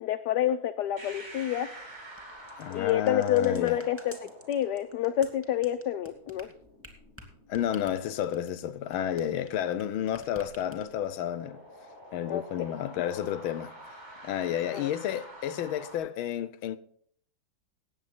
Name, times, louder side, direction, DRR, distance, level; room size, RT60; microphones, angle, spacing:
voice 1, 0.0-1.7 2.7-6.5 12.3-12.7 14.7-14.9, left 11 dB, 70° left, 1.0 m, -28 dB
sound 1, 1.0-16.0, right 1 dB, 30° right, 5.6 m, -49 dB
sound 2, 2.1-9.8 10.1-11.1, equal, 5° right, 2.2 m, -50 dB
voice 2, 2.6-3.8 7.5-11.6 12.1-13.7 14.2-16.8, left 10 dB, 85° left, 1.5 m, -31 dB
18.5 x 7.9 x 4.3 m
omnidirectional pair, 2.2 m